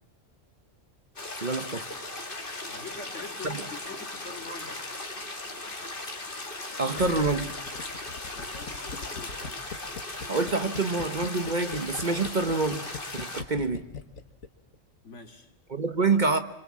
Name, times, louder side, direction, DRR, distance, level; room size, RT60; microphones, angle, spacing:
sound 1, 1.2-13.4, left 2 dB, 40° left, 2.5 m, -38 dB
voice 1, 1.4-1.8 3.5-3.6 6.8-7.5 10.3-12.8 13.1-13.8 15.7-16.4, right 3 dB, 40° right, 8 dB, 1.2 m, -26 dB
voice 2, 2.7-4.8 8.3-9.6 15.0-15.5 16.0-16.2, left 3 dB, 65° left, 4 dB, 3.0 m, -44 dB
Gurgling, 6.9-14.5 14.7-14.8, left 5 dB, 90° left, 1.8 m, -40 dB
26.0 x 26.0 x 7.4 m, 0.78 s
omnidirectional pair, 1.3 m